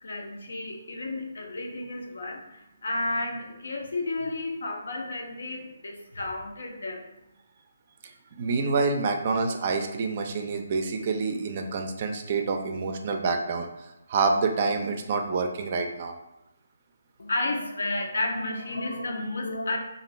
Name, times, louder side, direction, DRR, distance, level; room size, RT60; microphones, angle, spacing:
voice 1, 0.0-7.1 17.2-19.8, left 2 dB, 70° left, 3 dB, 0.6 m, -32 dB
voice 2, 8.0-16.2, right 4 dB, 40° right, 5 dB, 0.4 m, -27 dB
2.5 x 2.5 x 3.0 m, 0.92 s
figure-of-eight pair, 150°, 0 cm